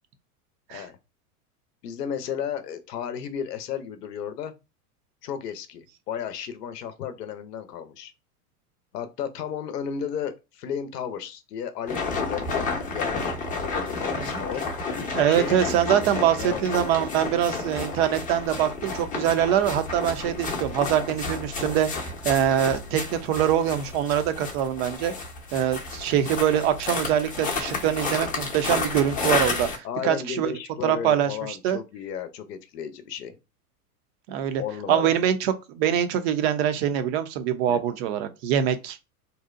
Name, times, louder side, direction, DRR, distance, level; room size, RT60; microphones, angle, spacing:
voice 1, 1.8-4.5 5.2-8.1 8.9-14.6 15.3-15.6 16.4-16.7 29.8-33.4 34.6-35.1 37.7-37.8, left 8 dB, 85° left, 0.6 m, -34 dB
sound 1, 11.9-29.8, left 4 dB, 15° left, 0.6 m, -31 dB
voice 2, 15.1-25.1 25.5-30.5 30.8-31.8 34.3-34.6 34.9-39.0, right 10 dB, 45° right, 0.5 m, -24 dB
2.6 x 2.1 x 2.4 m
hypercardioid pair, 105°, 47 cm